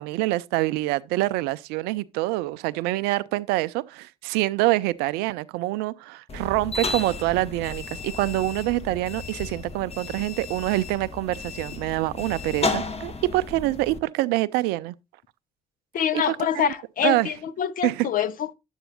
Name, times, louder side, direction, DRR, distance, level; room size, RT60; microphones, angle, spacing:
voice 1, 0.0-14.9 16.1-16.4 17.0-17.3 17.8-18.1, right 18 dB, 75° right, 0.4 m, -25 dB
sound 1, 6.3-14.0, left 3 dB, 35° left, 1.4 m, -33 dB
voice 2, 15.9-18.5, left 9 dB, 55° left, 0.7 m, -25 dB
10.0 x 8.0 x 2.8 m
hypercardioid pair, 45°, 17 cm